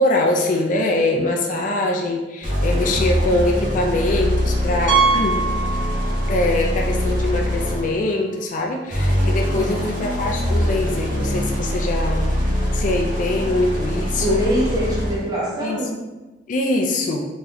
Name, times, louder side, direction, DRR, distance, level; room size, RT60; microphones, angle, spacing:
voice 1, 0.0-5.4 6.3-12.3 12.7-14.4 15.6-15.8 16.5-17.3, left 2 dB, 45° left, 1 dB, 0.4 m, -23 dB
sound 1, 2.4-8.0 8.9-15.3, equal, 50° right, 1.0 m, -23 dB
Piano, 4.9-6.5 6.7-6.9 7.5-7.6 7.8-7.9 10.0-10.1, right 5 dB, 70° right, 0.5 m, -22 dB
voice 2, 9.5-9.9 14.2-16.0, equal, 20° right, -5 dB, 1.0 m, -24 dB
3.8 x 3.1 x 2.9 m, 1.1 s
head